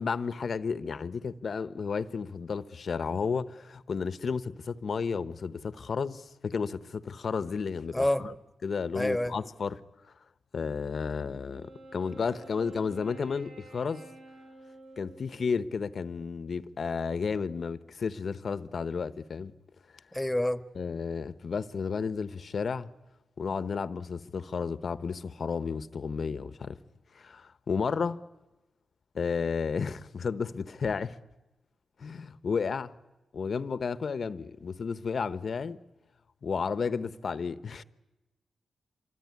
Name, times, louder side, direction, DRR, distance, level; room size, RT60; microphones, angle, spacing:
voice 1, 0.0-8.3 8.6-9.8 10.5-14.0 15.0-19.5 20.7-22.9 23.4-26.8 27.1-28.2 29.1-31.2 32.0-32.9 33.3-35.8 36.4-37.8, left 5 dB, 65° left, 1.0 m, -32 dB
voice 2, 7.9-8.2 9.0-9.4 20.1-20.6, left 1 dB, 10° left, 1.6 m, -27 dB
Wind instrument woodwind instrument, 11.5-16.0, right 2 dB, 85° right, 7.8 m, -51 dB
26.0 x 24.0 x 9.6 m
cardioid pair, 50°, 0 cm